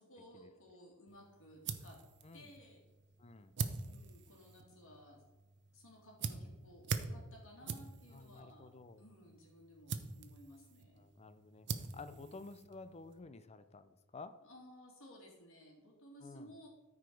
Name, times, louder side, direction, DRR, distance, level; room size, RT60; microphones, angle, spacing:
voice 1, 0.0-2.0 2.3-2.8 3.8-5.2 5.7-8.7 9.0-11.1 11.9-12.3 14.4-16.7, equal, 65° left, -1 dB, 2.5 m, -58 dB
sound 1, 1.1-13.2, right 5 dB, 55° right, 0.7 m, -45 dB
voice 2, 3.2-3.5 8.1-9.0 11.0-14.4 16.2-16.5, left 3 dB, 30° left, 12 dB, 0.5 m, -52 dB
13.0 x 4.9 x 4.6 m, 1.1 s
head